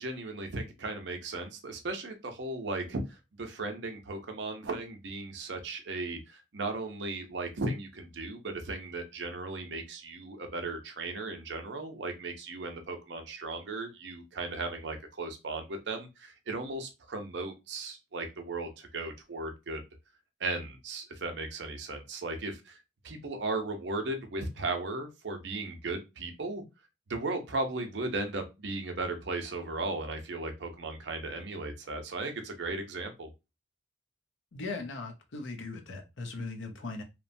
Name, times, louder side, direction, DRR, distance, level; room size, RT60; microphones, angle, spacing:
voice 1, 0.0-19.8 20.4-22.8 23.0-26.6 27.1-33.3, right 2 dB, 60° right, 5 dB, 0.6 m, -36 dB
voice 2, 34.5-37.0, left 3 dB, 70° left, 4 dB, 0.6 m, -39 dB
2.9 x 2.1 x 2.5 m, 0.25 s
head